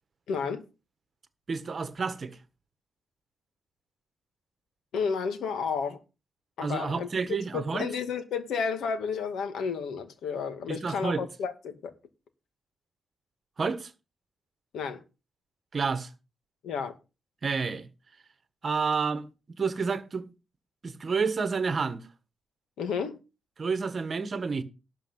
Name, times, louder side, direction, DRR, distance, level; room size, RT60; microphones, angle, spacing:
voice 1, 0.3-0.6 4.9-6.0 6.6-11.9 14.7-15.0 16.6-16.9 22.8-23.2, left 6 dB, 85° left, 2.1 m, -32 dB
voice 2, 1.5-2.3 6.6-7.8 10.7-11.2 13.6-13.9 15.7-16.1 17.4-17.9 18.6-19.2 19.6-20.2 20.8-22.0 23.6-24.6, right 5 dB, 35° right, 1.4 m, -29 dB
12.0 x 4.8 x 8.0 m
wide cardioid pair, 155°, 0 cm